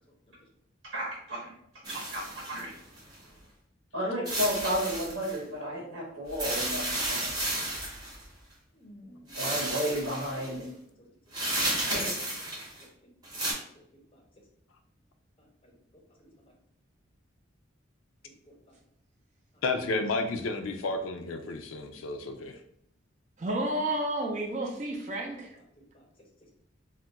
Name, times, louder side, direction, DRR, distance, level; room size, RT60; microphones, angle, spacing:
voice 1, 0.9-1.5 1.9-2.2 2.5-2.7 3.9-7.2 9.3-10.7 11.9-12.0, equal, 70° right, -7 dB, 0.9 m, -32 dB
voice 2, 1.8-2.2 8.7-9.6 11.0-11.1 12.8-12.9 13.7-14.2 15.4-15.7 16.2-16.3 18.2-18.8 20.8-20.9 25.3-26.1, equal, 25° left, 0 dB, 0.6 m, -57 dB
sound 1, 1.8-3.1 4.3-5.4 6.3-8.2 9.3-10.5 11.3-12.8 13.2-13.5, right 1 dB, 20° right, 0.8 m, -32 dB
voice 3, 19.6-22.6, left 3 dB, 80° left, 6 dB, 0.4 m, -31 dB
voice 4, 23.4-25.5, right 1 dB, 35° right, 1 dB, 0.4 m, -31 dB
2.3 x 2.1 x 3.9 m, 0.68 s
head